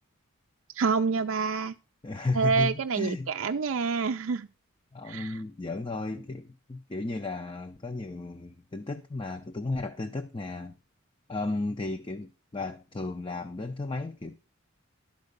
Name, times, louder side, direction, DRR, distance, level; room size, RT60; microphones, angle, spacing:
voice 1, 0.7-1.7 2.4-4.5 5.1-5.3, right 5 dB, 65° right, 0.4 m, -27 dB
voice 2, 2.0-3.3 4.9-10.7 11.3-14.4, left 2 dB, 20° left, 0.5 m, -34 dB
12.0 x 4.8 x 6.6 m
head